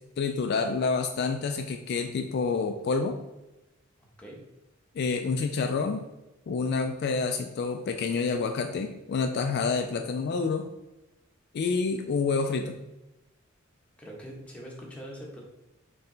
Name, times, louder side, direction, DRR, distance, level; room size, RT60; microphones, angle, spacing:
voice 1, 0.2-3.2 4.9-6.0 6.5-10.6 11.5-12.8, left 4 dB, 50° left, 5 dB, 0.3 m, -28 dB
voice 2, 4.0-4.4 14.0-15.4, equal, 5° left, -3 dB, 1.0 m, -43 dB
4.3 x 3.1 x 3.9 m, 0.97 s
head